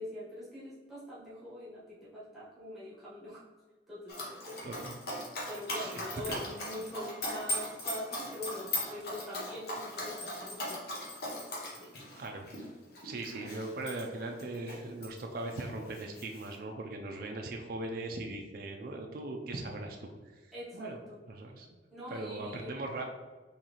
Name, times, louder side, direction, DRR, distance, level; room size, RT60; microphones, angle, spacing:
voice 1, 0.0-3.5 3.9-4.7 5.5-10.8 11.7-11.9 20.5-21.2 21.9-22.8, left 1 dB, ahead, -9 dB, 1.2 m, -43 dB
Dog, 4.1-15.2 15.5-16.5, left 1 dB, 55° left, 0.9 m, -39 dB
voice 2, 4.6-5.0 5.7-6.4 12.2-12.5 13.0-21.0 21.3-21.8 22.1-23.1, right 2 dB, 50° right, 2 dB, 0.4 m, -40 dB
3.9 x 3.2 x 3.0 m, 1.3 s
head